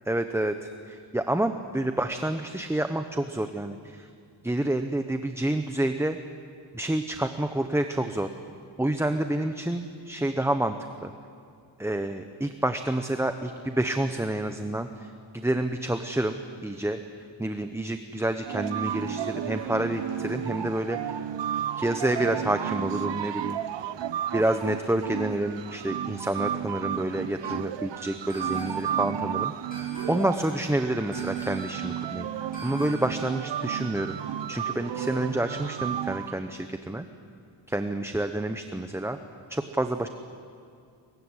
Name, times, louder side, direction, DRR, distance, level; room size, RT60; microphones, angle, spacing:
voice 1, 0.1-4.1 4.4-6.2 6.7-8.3 8.8-10.7 11.0-11.1 11.8-17.0 17.4-21.2 21.8-23.6 24.3-29.5 30.1-32.3 32.6-34.2 34.5-37.0 37.7-39.2 39.5-40.1, right 1 dB, 5° right, 7 dB, 0.9 m, -28 dB
sound 1, 18.5-36.3, right 10 dB, 65° right, 1.0 m, -33 dB
sound 2, 28.3-29.0 29.7-30.4 31.1-31.8 32.5-33.3, equal, 20° left, 6.8 m, -45 dB
23.0 x 22.5 x 9.9 m, 2.4 s
wide cardioid pair, 130°, 47 cm